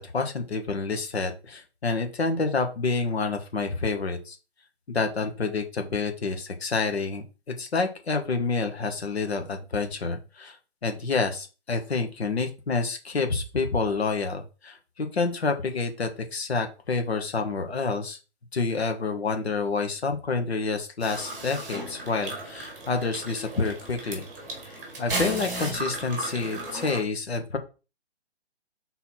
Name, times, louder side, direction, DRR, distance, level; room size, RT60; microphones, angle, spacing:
voice 1, 0.1-4.3 4.9-7.2 7.6-10.6 10.8-18.2 18.5-24.3 25.0-27.6, left 4 dB, 65° left, 5 dB, 1.5 m, -28 dB
sound 1, 21.0-27.0, right 2 dB, 15° right, 1.6 m, -35 dB
4.4 x 4.1 x 5.6 m, 0.32 s
hypercardioid pair, 175°, 33 cm